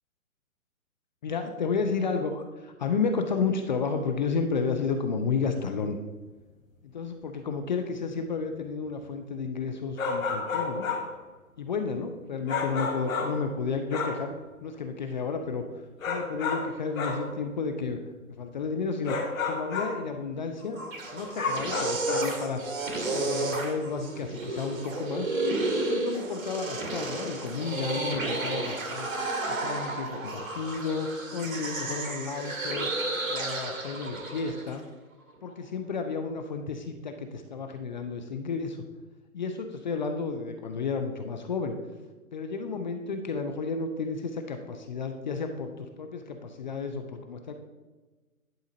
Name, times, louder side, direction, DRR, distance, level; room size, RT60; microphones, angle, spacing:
voice 1, 1.2-6.0 6.9-10.9 11.6-18.0 18.3-20.8 21.1-22.8 23.1-25.3 25.9-29.1 29.5-32.9 33.3-34.8 35.4-38.8 39.3-41.7 42.3-47.5, left 5 dB, 35° left, 5 dB, 0.5 m, -32 dB
sound 1, 10.0-11.2 12.5-13.5 13.9-14.3 16.0-17.3 19.0-20.0 21.3-22.4, left 4 dB, 65° left, 1.9 m, -31 dB
sound 2, 20.6-34.7, right 2 dB, 65° right, 2.0 m, -32 dB
10.5 x 3.8 x 5.1 m, 1.2 s
hypercardioid pair, 140°, 43 cm